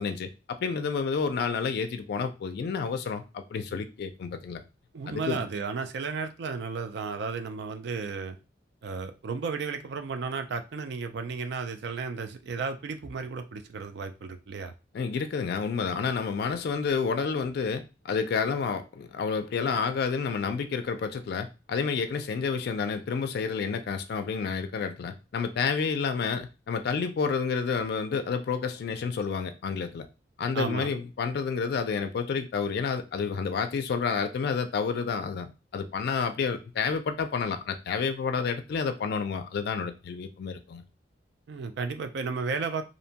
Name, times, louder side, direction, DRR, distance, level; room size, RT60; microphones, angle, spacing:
voice 1, 0.0-4.6 5.1-5.4 14.9-30.1 30.4-40.8, left 5 dB, 60° left, 0.3 m, -30 dB
voice 2, 4.9-8.4 8.8-14.7 30.5-30.9 41.5-42.8, right 4 dB, 65° right, 0.4 m, -33 dB
2.6 x 2.2 x 2.7 m
head